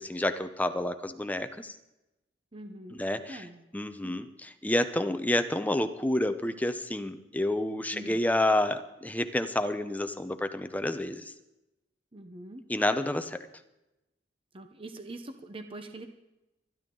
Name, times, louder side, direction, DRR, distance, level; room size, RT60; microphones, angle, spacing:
voice 1, 0.0-1.7 3.0-3.4 3.7-11.3 12.7-13.4, left 1 dB, 10° left, 9 dB, 0.7 m, -29 dB
voice 2, 2.5-3.7 4.0-4.2 7.9-8.2 12.1-12.6 14.5-16.1, right 1 dB, 30° right, 7 dB, 0.9 m, -44 dB
24.5 x 10.5 x 3.9 m, 0.96 s
head